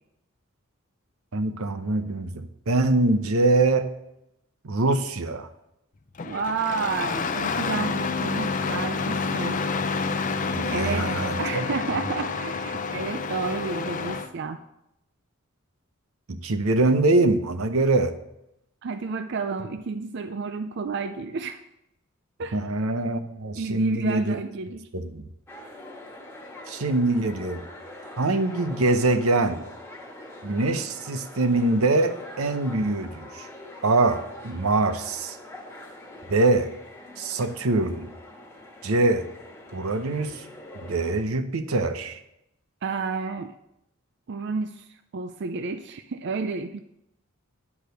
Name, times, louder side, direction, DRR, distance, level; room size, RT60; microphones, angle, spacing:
voice 1, 1.3-3.9 4.6-5.5 10.5-11.7 16.3-18.1 22.5-24.4 24.9-25.3 26.7-27.6 28.2-29.6 30.4-33.5 33.8-35.4 36.3-36.7 37.2-38.1 38.8-39.3 39.7-40.4 40.8-42.2, right 2 dB, 85° right, 9 dB, 0.8 m, -24 dB
Engine starting, 6.2-14.3, left 4 dB, 35° left, 0.5 m, -28 dB
voice 2, 6.2-9.6 10.7-14.6 18.8-21.6 22.4-22.6 23.6-24.9 42.8-43.5 44.3-46.8, right 4 dB, 55° right, 8 dB, 0.4 m, -31 dB
sound 1, 25.5-41.2, left 1 dB, 10° left, 1.5 m, -44 dB
10.0 x 4.9 x 6.6 m, 0.84 s
head